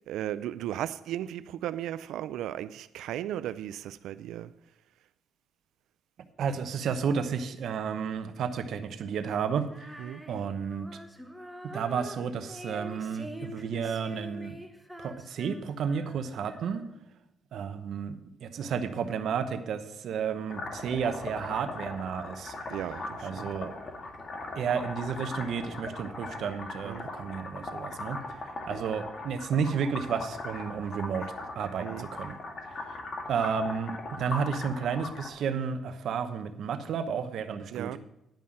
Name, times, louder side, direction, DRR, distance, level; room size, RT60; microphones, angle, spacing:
voice 1, 0.1-4.5 10.0-10.2 22.7-23.5 26.8-27.1 31.8-32.1 37.7-38.0, right 12 dB, 85° right, 0.3 m, -36 dB
voice 2, 6.4-10.0 10.3-11.0 11.7-14.6 15.0-16.9 17.5-22.5 23.2-23.7 24.5-31.2 31.5-32.4 32.7-33.0 33.3-38.0, right 6 dB, 70° right, 0.9 m, -32 dB
Female singing, 9.7-17.1, equal, 5° right, 1.1 m, -45 dB
sound 1, 20.5-35.3, left 2 dB, 40° left, 2.0 m, -39 dB
10.5 x 5.5 x 7.5 m
cardioid pair, 90°, 0 cm